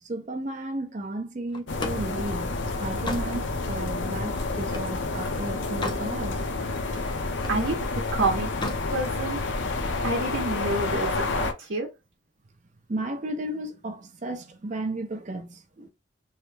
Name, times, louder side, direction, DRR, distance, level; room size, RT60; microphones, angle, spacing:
voice 1, 0.0-6.5 12.9-15.9, right 1 dB, 35° right, 0.5 m, -34 dB
Slam, 1.5-5.0 5.4-6.1 6.5-7.7 8.4-8.9, left 2 dB, 25° left, 0.4 m, -37 dB
sound 1, 1.7-11.5, left 3 dB, 65° left, 0.6 m, -29 dB
voice 2, 7.5-7.8 8.1-9.4 10.0-11.9, right 2 dB, 75° right, 0.8 m, -29 dB
3.1 x 2.1 x 3.2 m
head